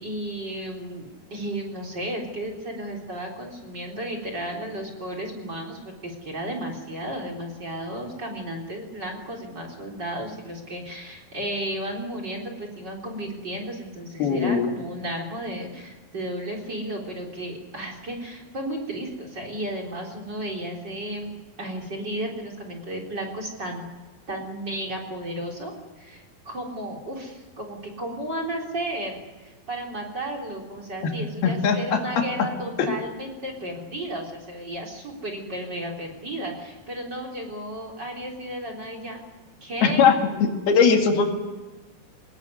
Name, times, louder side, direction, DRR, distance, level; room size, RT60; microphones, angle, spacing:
voice 1, 0.0-21.3 21.6-23.9 24.3-25.7 26.0-39.2 39.6-40.1, right 1 dB, 25° right, 3 dB, 3.9 m, -33 dB
voice 2, 14.2-14.7 31.4-32.5 32.8-33.0 39.8-40.1 40.4-41.2, left 6 dB, 75° left, 4 dB, 4.1 m, -20 dB
24.0 x 20.5 x 9.5 m, 1.2 s
omnidirectional pair, 4.6 m